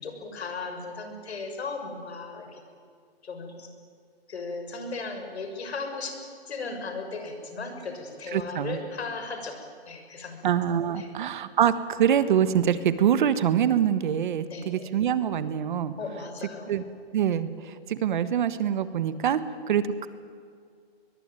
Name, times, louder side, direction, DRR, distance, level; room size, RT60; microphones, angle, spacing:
voice 1, 0.0-2.6 3.2-3.7 4.3-6.2 6.5-9.6 9.9-10.4 11.0-11.1 14.5-14.9 16.0-16.7, left 4 dB, 85° left, 5 dB, 6.2 m, -36 dB
voice 2, 8.3-8.8 10.4-15.9 16.7-16.8 17.1-20.1, right 9 dB, 50° right, 13 dB, 1.5 m, -25 dB
22.5 x 22.0 x 9.3 m, 2.2 s
hypercardioid pair, 165°, 31 cm